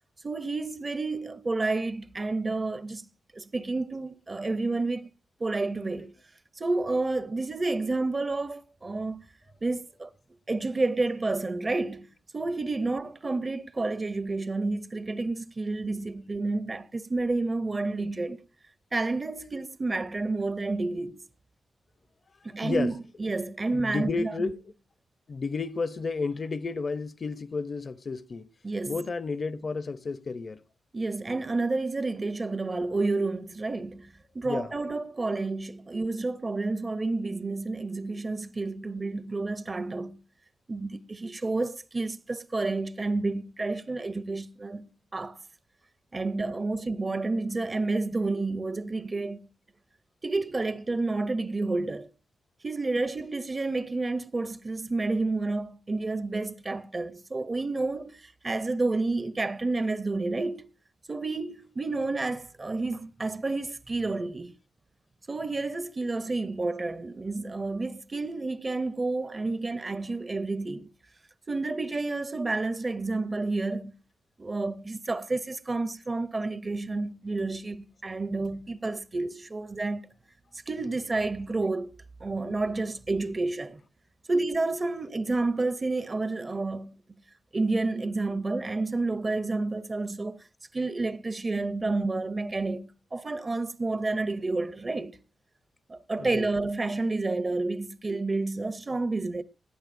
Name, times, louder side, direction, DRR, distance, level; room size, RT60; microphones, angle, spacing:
voice 1, 0.2-3.1 3.3-5.1 5.4-6.1 6.6-9.3 9.6-10.1 10.5-12.1 12.3-18.4 18.9-21.2 22.4-22.9 23.2-24.5 28.6-29.0 30.9-40.2 40.7-45.4 46.1-49.5 50.2-52.1 52.6-60.7 61.1-64.5 65.3-70.9 71.5-73.9 74.4-80.1 80.7-82.0 82.2-83.8 84.3-86.9 87.5-90.4 90.7-95.2 95.9-99.4, right 3 dB, 25° right, 0.6 m, -30 dB
voice 2, 22.6-23.1 23.7-24.6 25.3-28.5 28.9-30.6 34.4-34.7 96.1-96.5, left 4 dB, 40° left, 0.6 m, -32 dB
19.5 x 14.5 x 2.5 m
wide cardioid pair, 140°, 0 cm